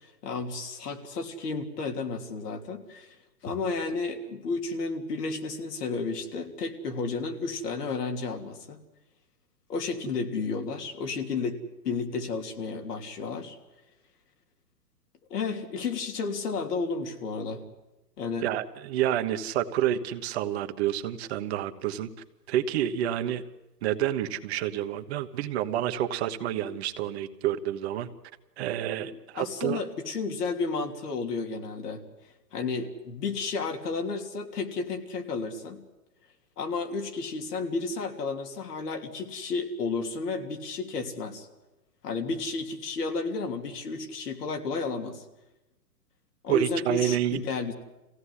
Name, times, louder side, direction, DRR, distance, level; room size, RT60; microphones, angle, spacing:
voice 1, 0.2-3.2 3.4-8.8 9.7-11.6 11.8-13.6 15.3-17.6 18.2-18.5 29.3-32.0 32.5-35.8 36.6-41.5 42.0-45.2 46.4-47.7, left 4 dB, 70° left, 3 dB, 3.3 m, -32 dB
voice 2, 18.4-22.1 22.5-23.4 23.8-28.1 28.6-29.8 46.5-47.4, right 11 dB, 40° right, 8 dB, 1.3 m, -28 dB
24.0 x 16.5 x 10.0 m, 1.0 s
hypercardioid pair, 145°, 49 cm